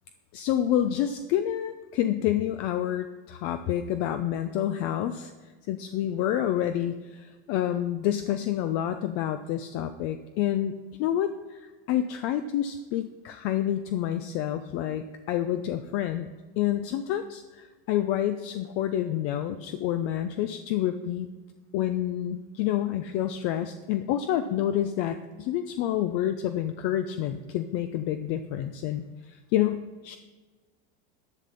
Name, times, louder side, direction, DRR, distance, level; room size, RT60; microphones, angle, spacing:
voice 1, 0.3-5.3 5.7-10.7 11.0-11.3 11.9-16.3 16.6-21.3 21.7-29.0 29.5-30.2, left 11 dB, 50° left, 8 dB, 0.5 m, -28 dB
10.5 x 5.8 x 5.4 m, 1.3 s
supercardioid pair, 140°, 30 cm